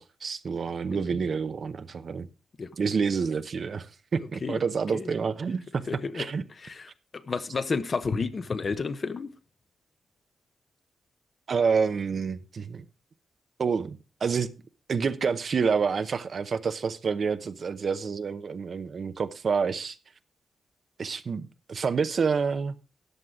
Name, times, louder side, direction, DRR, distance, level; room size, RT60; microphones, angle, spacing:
voice 1, 0.0-2.3 2.8-3.9 4.1-5.8 6.1-6.4 11.5-12.8 13.6-14.5 14.9-20.0 21.0-22.8, right 5 dB, 55° right, 0.8 m, -28 dB
voice 2, 4.2-4.6 4.9-5.1 5.9-6.3 6.6-9.3, left 4 dB, 40° left, 0.9 m, -31 dB
13.5 x 9.5 x 3.6 m
wide cardioid pair, 110°, 0 cm